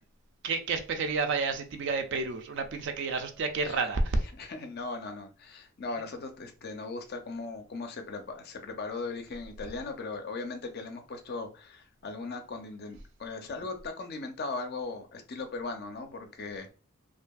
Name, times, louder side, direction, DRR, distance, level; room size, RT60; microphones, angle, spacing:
voice 1, 0.4-4.3, right 3 dB, 55° right, 0.4 m, -30 dB
voice 2, 4.4-16.7, left 3 dB, 45° left, 0.4 m, -38 dB
2.6 x 2.5 x 2.2 m
head